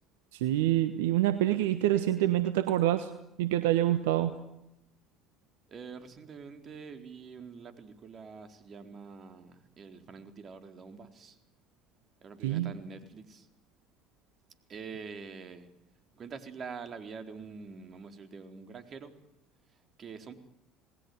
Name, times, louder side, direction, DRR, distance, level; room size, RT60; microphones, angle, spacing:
voice 1, 0.3-3.1 3.4-4.3 12.4-12.7, right 13 dB, 75° right, 11 dB, 1.3 m, -26 dB
voice 2, 5.7-11.4 12.2-13.5 14.7-15.7 16.2-19.1 20.0-20.3, right 5 dB, 40° right, 7 dB, 4.1 m, -45 dB
28.0 x 20.0 x 9.7 m, 0.88 s
hypercardioid pair, 60°, 0 cm